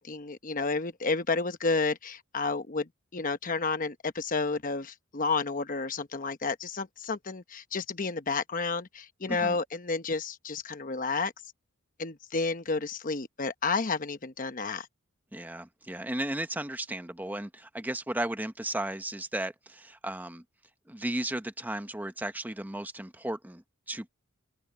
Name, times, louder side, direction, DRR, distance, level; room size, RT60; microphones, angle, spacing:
voice 1, 0.0-11.3 12.0-14.9, left 4 dB, 40° left, 1.0 m, -31 dB
voice 2, 15.3-20.4 20.9-24.1, right 1 dB, 10° right, 0.9 m, -35 dB
open air
head